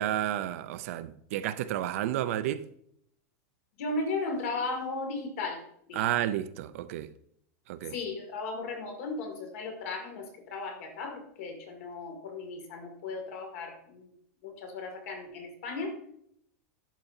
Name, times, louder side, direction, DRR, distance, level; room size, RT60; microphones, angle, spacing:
voice 1, 0.0-2.6 5.9-7.1 7.7-8.0, right 12 dB, 60° right, 0.4 m, -31 dB
voice 2, 3.8-5.6 5.9-6.1 7.9-14.1 14.4-15.9, left 3 dB, 65° left, 2.2 m, -36 dB
11.0 x 5.1 x 2.7 m
supercardioid pair, 170°, 8 cm